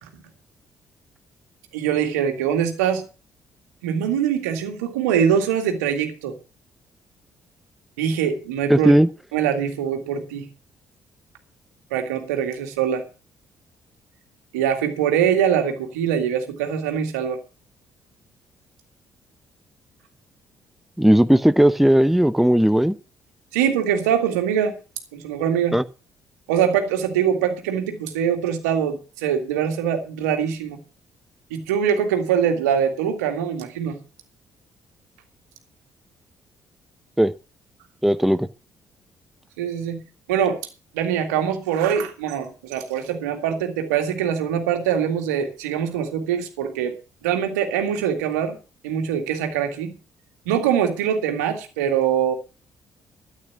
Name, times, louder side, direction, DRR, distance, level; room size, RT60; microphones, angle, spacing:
voice 1, 1.7-3.0 3.8-6.3 8.0-8.9 9.3-10.5 11.9-13.1 14.5-17.4 23.5-24.8 25.1-25.8 26.5-30.8 31.5-34.0 39.6-40.0 40.3-40.6 40.9-47.0 47.2-48.6 48.8-50.0 50.5-52.3, right 8 dB, 75° right, 2.1 m, -23 dB
voice 2, 8.7-9.1 21.0-23.0 25.7-25.8 37.2-37.3 38.0-38.5, equal, ahead, 0.8 m, -16 dB
13.5 x 8.9 x 5.9 m
figure-of-eight pair, 45°, 9 cm